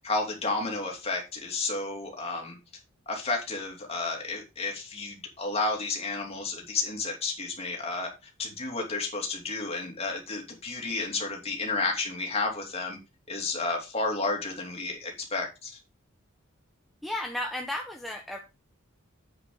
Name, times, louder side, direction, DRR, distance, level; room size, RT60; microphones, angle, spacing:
voice 1, 0.0-2.6 3.1-8.1 8.4-13.0 13.3-15.7, left 3 dB, 30° left, 1 dB, 2.9 m, -31 dB
voice 2, 17.0-18.4, left 1 dB, ahead, 1 dB, 0.9 m, -33 dB
8.2 x 7.8 x 3.9 m, 0.26 s
head